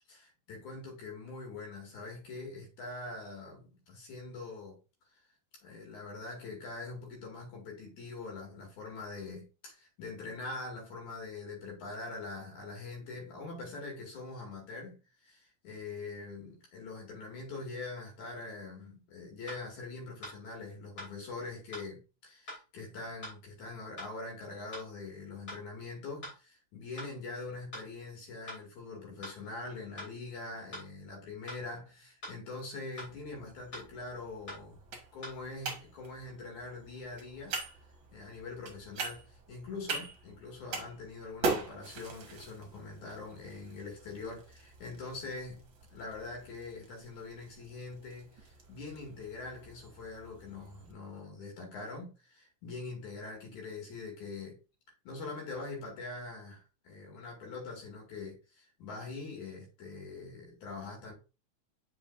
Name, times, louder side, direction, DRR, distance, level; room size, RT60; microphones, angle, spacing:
voice 1, 0.1-4.8 5.6-37.6 38.1-54.6 55.1-61.1, left 3 dB, 70° left, 3.5 m, -43 dB
sound 1, 18.8-18.9 19.5-19.6 20.2-20.4 21.0-21.1 21.7-21.9 22.5-22.6 23.2-23.4 24.0-24.1 24.7-24.9 25.5-25.6 26.2-26.4 27.0-27.1 27.7-27.9 28.5-28.6 29.2-29.4 30.0-30.1 30.7-30.9 31.5-31.6 32.2-32.4 33.0-33.1 33.7-33.9 34.5-34.6 35.2-35.4, left 1 dB, 30° left, 3.3 m, -43 dB
sound 2, 33.0-50.9, right 4 dB, 50° right, 1.8 m, -43 dB
7.9 x 5.3 x 2.6 m
omnidirectional pair, 3.6 m